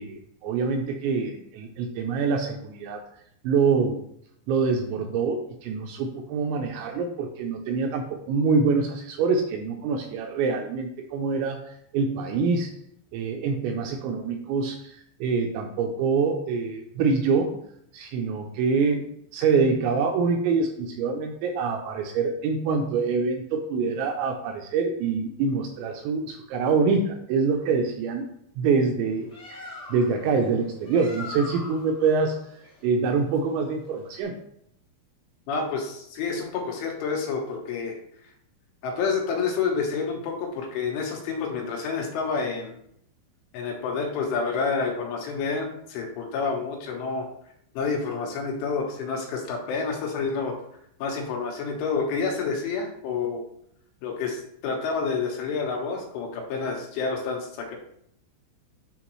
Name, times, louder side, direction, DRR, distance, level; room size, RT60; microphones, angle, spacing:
voice 1, 0.0-3.0 3.4-4.1 4.5-12.7 13.1-17.5 17.9-28.3 28.6-32.4 32.8-34.4, right 5 dB, 85° right, 4 dB, 2.6 m, -25 dB
Bird, 29.0-34.2, left 3 dB, 55° left, 0.6 m, -43 dB
voice 2, 35.5-38.0 38.8-42.8 43.5-47.3 47.8-50.6 51.0-53.4 54.0-57.8, left 5 dB, 75° left, 1 dB, 3.4 m, -29 dB
10.0 x 3.7 x 3.1 m, 0.71 s
omnidirectional pair, 5.8 m